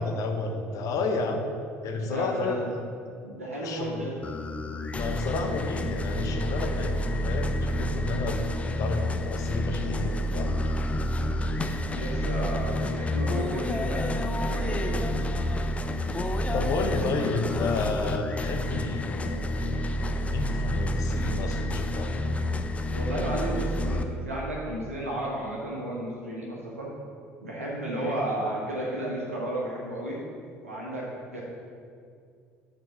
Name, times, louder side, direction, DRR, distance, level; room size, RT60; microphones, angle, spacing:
voice 1, 0.0-1.5 1.8-2.8 3.6-4.1 4.9-10.5 16.5-19.6 20.0-22.1, left 3 dB, 50° left, 4 dB, 0.9 m, -31 dB
voice 2, 2.0-2.7 3.2-4.2 11.9-15.0 22.9-26.9 27.4-30.2 30.6-31.4, right 1 dB, 85° right, -4 dB, 1.3 m, -33 dB
sound 1, 4.2-24.0, left 1 dB, 15° left, 0.5 m, -29 dB
6.7 x 4.0 x 6.4 m, 2.3 s
figure-of-eight pair, 60°, 7 cm